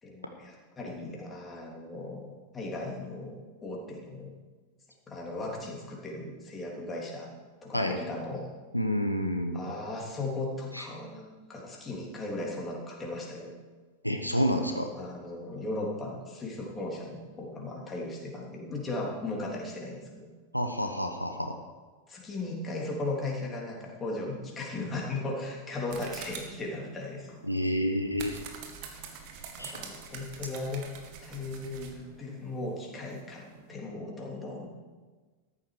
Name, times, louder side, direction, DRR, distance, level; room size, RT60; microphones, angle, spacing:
voice 1, 0.0-4.3 5.1-7.4 7.6-8.5 9.5-13.5 14.9-20.3 22.1-27.4 29.6-30.9 31.2-34.7, left 2 dB, 20° left, -1 dB, 3.2 m, -37 dB
voice 2, 8.7-9.6 10.7-10.9 14.0-14.9 20.5-21.5 27.5-28.4 29.6-29.8, equal, 90° left, 4 dB, 1.0 m, -29 dB
sound 1, 25.9-33.7, right 6 dB, 45° right, 2.0 m, -46 dB
14.0 x 11.5 x 4.9 m, 1.3 s
figure-of-eight pair, 90°, 0 cm